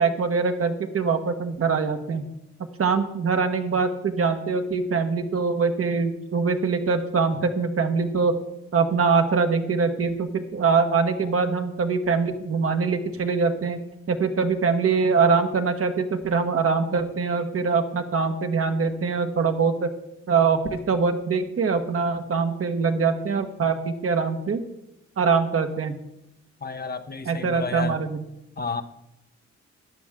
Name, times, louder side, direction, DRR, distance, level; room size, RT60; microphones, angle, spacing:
voice 1, 0.0-2.2 2.8-8.3 8.7-13.8 14.1-19.9 20.3-24.6 25.2-25.9 27.2-28.2, right 5 dB, 50° right, 6 dB, 1.3 m, -23 dB
voice 2, 26.6-28.0 28.6-28.8, left 4 dB, 30° left, 9 dB, 0.8 m, -31 dB
13.5 x 9.9 x 3.7 m, 0.88 s
supercardioid pair, 65°, 29 cm